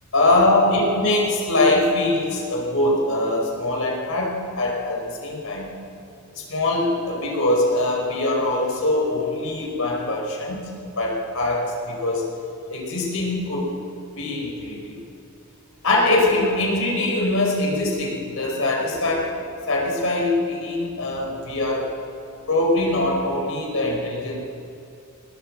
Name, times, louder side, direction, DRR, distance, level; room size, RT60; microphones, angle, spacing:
voice 1, 0.1-5.7 6.3-10.6 11.0-12.3 12.7-13.7 14.2-15.0 15.8-19.3 19.7-21.9 22.5-24.4, left 2 dB, 70° left, -1 dB, 5.0 m, -22 dB
20.0 x 19.0 x 7.7 m, 2.6 s
head